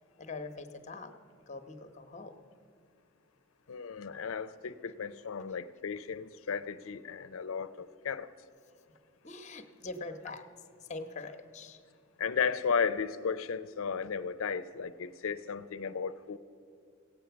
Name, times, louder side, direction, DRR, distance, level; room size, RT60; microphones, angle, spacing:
voice 1, 0.2-1.1 1.5-2.4 9.2-10.4 10.8-11.8, left 3 dB, 35° left, 0.9 m, -43 dB
voice 2, 3.7-8.3 12.2-16.4, left 6 dB, 90° left, 0.5 m, -34 dB
16.5 x 8.8 x 6.9 m
head